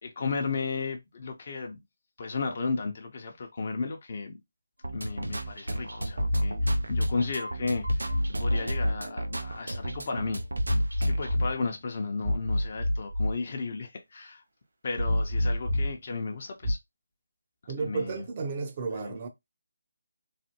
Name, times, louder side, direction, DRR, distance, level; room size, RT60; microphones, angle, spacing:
voice 1, 0.0-1.8 2.2-4.4 4.9-8.1 8.4-10.4 11.0-14.4 14.8-16.8 17.8-18.2 18.9-19.2, left 4 dB, 45° left, 0.7 m, -34 dB
sound 1, 4.8-11.3, right 1 dB, 85° right, 0.5 m, -35 dB
sound 2, 6.2-7.2 7.8-9.0 10.6-11.5 12.2-13.3 15.0-15.9 16.6-16.7, left 1 dB, 60° right, 1.2 m, -27 dB
voice 2, 17.7-19.3, right 4 dB, 35° right, 0.6 m, -33 dB
3.2 x 2.2 x 2.9 m
figure-of-eight pair, 155°, 0 cm